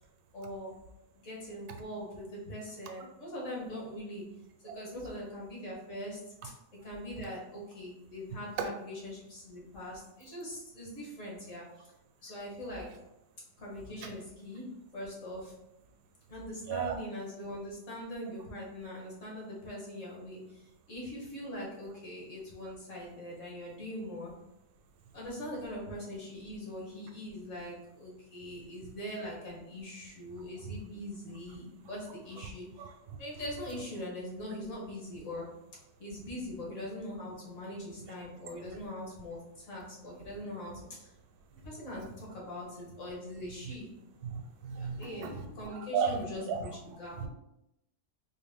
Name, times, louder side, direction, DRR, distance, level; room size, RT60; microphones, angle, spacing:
voice 1, 0.3-0.9 1.2-4.3 4.6-6.3 6.8-11.9 12.2-13.0 13.6-15.6 16.3-24.4 25.1-32.9 33.2-35.6 36.0-41.1 41.6-44.0 44.8-47.3, left 1 dB, 55° left, -4 dB, 1.5 m, -42 dB
voice 2, 44.2-46.2 46.5-46.6 47.2-47.3, right 7 dB, 80° right, 4 dB, 1.1 m, -34 dB
4.0 x 2.1 x 3.5 m, 0.86 s
omnidirectional pair, 1.6 m